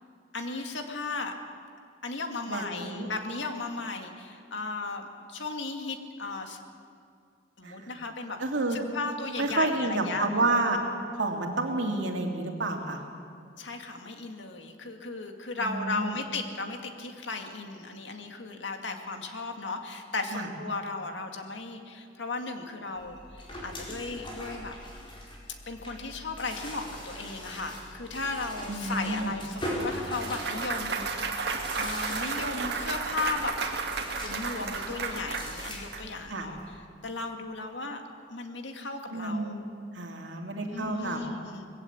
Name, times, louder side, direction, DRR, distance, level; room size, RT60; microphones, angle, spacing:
voice 1, 0.3-1.4 2.0-6.6 7.6-8.4 8.7-10.3 13.6-23.2 23.6-24.7 25.7-31.1 31.7-33.5 34.2-36.7 37.0-38.0 38.3-39.5 40.7-41.6, left 3 dB, 75° left, 4 dB, 2.0 m, -35 dB
voice 2, 2.5-3.1 7.6-7.9 8.4-8.8 9.4-10.8 11.1-13.0 15.6-16.2 20.3-20.5 28.7-29.3 36.3-36.5 39.1-39.6 39.9-41.2, right 2 dB, 80° right, 2 dB, 2.7 m, -30 dB
sound 1, 23.0-36.7, left 1 dB, 30° left, 4.8 m, -41 dB
Clapping / Cheering / Applause, 29.8-36.0, right 4 dB, 65° right, 2.0 m, -33 dB
20.5 x 16.0 x 8.5 m, 2.3 s
head